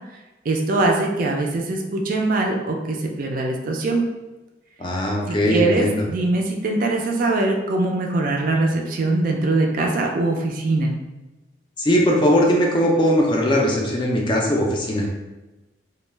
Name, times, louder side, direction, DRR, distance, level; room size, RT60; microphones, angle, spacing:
voice 1, 0.5-4.1 5.3-10.9, right 2 dB, 45° right, 1 dB, 0.3 m, -22 dB
voice 2, 4.8-6.0 11.8-15.1, equal, 25° left, -1 dB, 0.4 m, -19 dB
2.2 x 2.0 x 3.2 m, 1.1 s
head